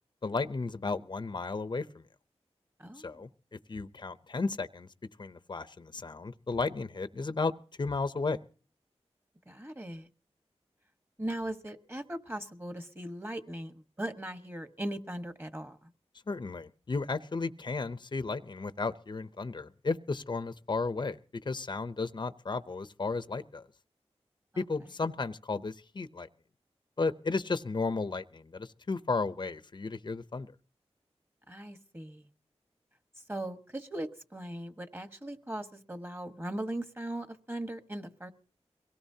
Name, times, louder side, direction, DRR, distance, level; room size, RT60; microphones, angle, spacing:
voice 1, 0.2-2.0 3.0-4.9 5.2-7.5 7.8-8.4 16.3-21.2 21.5-23.7 24.6-26.3 27.0-30.5, left 3 dB, 45° left, 12 dB, 0.7 m, -34 dB
voice 2, 2.8-3.3 9.5-10.1 11.2-15.9 24.5-24.6 31.5-32.3 33.3-38.3, right 1 dB, 20° right, 8 dB, 1.4 m, -39 dB
23.0 x 17.5 x 2.8 m, 0.39 s
wide cardioid pair, 55°, 11 cm